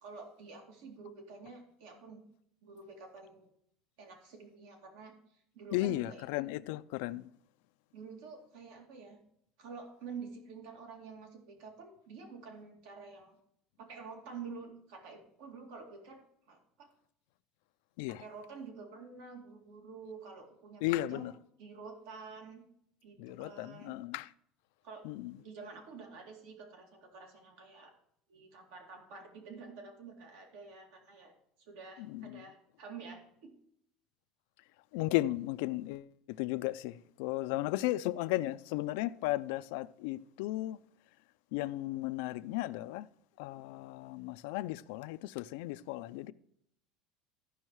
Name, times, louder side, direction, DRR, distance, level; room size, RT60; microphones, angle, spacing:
voice 1, 0.0-2.2 2.6-3.5 4.0-6.2 7.9-9.2 9.6-13.4 13.8-16.2 16.5-16.9 18.1-21.3 21.6-22.6 23.0-24.0 24.8-25.1 25.4-27.9 28.3-31.3 31.6-33.5 37.5-37.7, right 5 dB, 80° right, 2.3 m, -49 dB
voice 2, 5.7-7.3 18.0-18.2 20.8-21.3 23.2-24.3 25.0-25.4 32.1-32.4 34.9-36.1 36.4-40.8 41.5-43.1 43.4-46.3, left 17 dB, 75° left, 0.4 m, -35 dB
14.0 x 5.5 x 4.6 m
cardioid pair, 160°, 0 cm